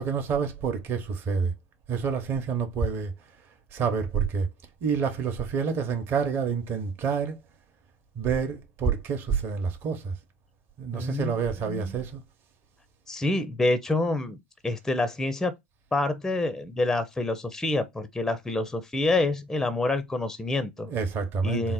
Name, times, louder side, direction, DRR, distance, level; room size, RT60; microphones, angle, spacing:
voice 1, 0.0-1.5 1.9-3.1 3.7-4.5 4.8-7.4 8.2-10.1 10.8-12.2 20.8-21.7, right 6 dB, 35° right, 0.9 m, -28 dB
voice 2, 10.9-11.3 11.7-12.0 13.1-14.4 14.6-15.5 15.9-20.9 21.4-21.7, left 2 dB, 5° left, 0.6 m, -27 dB
4.0 x 2.1 x 3.8 m
figure-of-eight pair, 85°, 7 cm